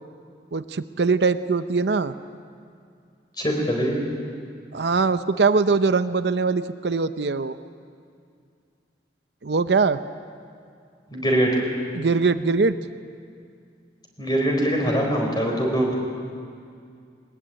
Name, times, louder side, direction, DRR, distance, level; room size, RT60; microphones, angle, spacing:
voice 1, 0.5-2.1 4.7-7.6 9.4-10.0 11.9-12.8, right 4 dB, 70° right, 11 dB, 0.7 m, -22 dB
voice 2, 3.4-4.0 11.1-11.6 14.2-16.0, right 1 dB, 25° left, 0 dB, 4.5 m, -22 dB
21.0 x 20.0 x 8.8 m, 2.3 s
head